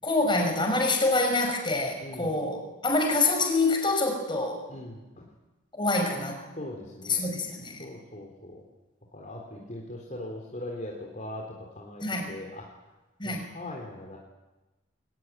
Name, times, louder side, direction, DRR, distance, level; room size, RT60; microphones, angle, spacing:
voice 1, 0.0-4.6 5.7-6.4 7.0-7.8 12.0-12.3 13.2-13.4, left 2 dB, 25° left, 3 dB, 6.0 m, -26 dB
voice 2, 2.0-2.3 4.7-5.2 6.6-7.2 7.8-8.6 9.1-11.5 11.8-12.7 13.2-14.2, left 1 dB, 40° left, -1 dB, 3.8 m, -40 dB
22.5 x 19.5 x 9.4 m, 1.1 s
head